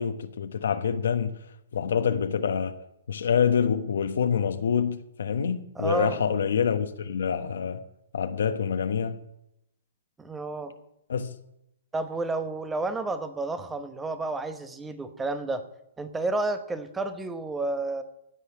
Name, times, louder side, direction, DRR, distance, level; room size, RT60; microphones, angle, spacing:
voice 1, 0.0-1.4 1.7-2.7 3.1-7.8 8.1-9.2 11.1-11.3, left 7 dB, 80° left, 1.2 m, -26 dB
voice 2, 5.7-6.2 10.2-10.7 11.9-15.6 16.0-18.0, right 2 dB, 10° right, 1.0 m, -31 dB
17.0 x 5.7 x 8.6 m
hypercardioid pair, 150°, 0 cm